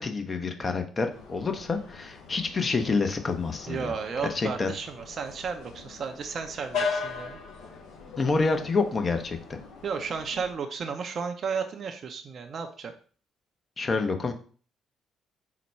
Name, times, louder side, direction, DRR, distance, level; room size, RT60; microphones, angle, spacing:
voice 1, 0.0-3.9 4.3-4.7 8.2-9.4 13.8-14.3, left 4 dB, 40° left, 6 dB, 0.7 m, -27 dB
sound 1, 1.1-10.5, left 5 dB, 70° left, 0.7 m, -39 dB
voice 2, 3.7-7.4 9.8-12.9, right 5 dB, 55° right, 6 dB, 0.4 m, -33 dB
4.0 x 2.2 x 4.3 m, 0.42 s
hypercardioid pair, 50°, 0 cm